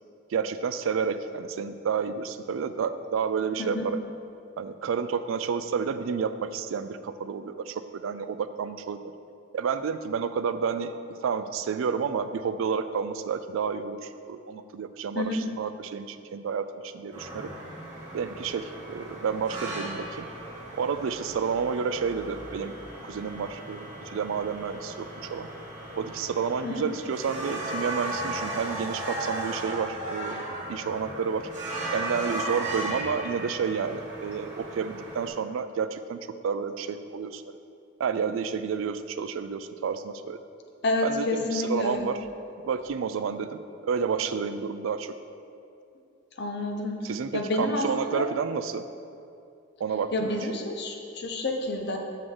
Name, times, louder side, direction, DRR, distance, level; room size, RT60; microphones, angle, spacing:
voice 1, 0.3-4.0 4.6-9.0 9.5-10.9 11.2-17.5 18.1-20.3 20.7-22.7 23.0-25.5 26.0-30.4 30.7-31.5 31.9-37.4 38.0-40.4 41.0-42.3 42.6-45.1 47.0-48.9 49.8-50.5, right 6 dB, 75° right, 11 dB, 0.3 m, -30 dB
voice 2, 3.6-3.9 15.1-15.4 26.6-26.9 40.8-42.1 46.4-48.3 50.1-52.0, left 2 dB, 55° left, 3 dB, 0.7 m, -29 dB
sound 1, 17.1-35.3, right 1 dB, 40° right, 1.5 m, -36 dB
6.4 x 6.0 x 3.7 m, 2.5 s
head